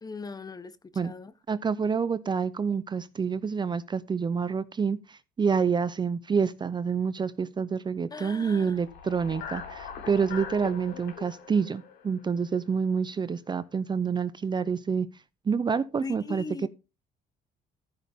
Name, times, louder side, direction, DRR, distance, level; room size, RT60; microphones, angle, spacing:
voice 1, 0.0-1.4 8.1-8.8 16.0-16.7, left 4 dB, 20° left, 0.9 m, -40 dB
voice 2, 1.5-15.1 15.5-16.4, right 6 dB, 25° right, 0.6 m, -28 dB
sound 1, 8.7-12.9, left 7 dB, 80° left, 3.2 m, -42 dB
14.5 x 8.2 x 3.6 m
cardioid pair, 110°, 17 cm